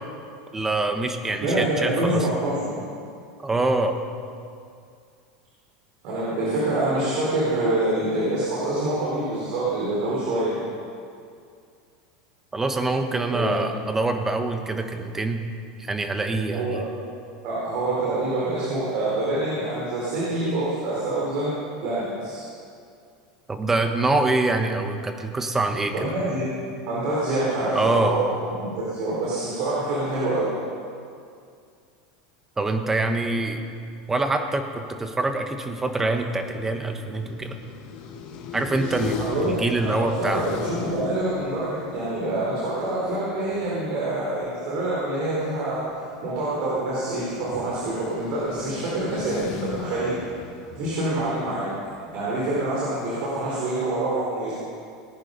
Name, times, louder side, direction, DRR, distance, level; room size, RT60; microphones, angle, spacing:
voice 1, 0.5-2.3 3.4-4.0 12.5-15.4 15.8-16.8 23.5-25.9 27.7-28.2 32.6-33.6 34.1-37.6 38.5-39.2 39.5-40.4, right 2 dB, 15° right, 6 dB, 1.3 m, -25 dB
voice 2, 1.4-2.7 6.0-10.6 13.3-13.6 16.5-16.8 17.4-22.4 25.9-26.5 26.9-28.2 28.6-30.5 39.2-45.8 46.2-50.2 50.7-51.6 52.1-54.5, right 2 dB, 60° right, -7 dB, 4.6 m, -26 dB
sound 1, 35.9-43.9 44.3-44.5 44.8-52.6, left 5 dB, 55° left, 1.6 m, -38 dB
19.0 x 9.7 x 5.5 m, 2.4 s
supercardioid pair, 125°, 3 cm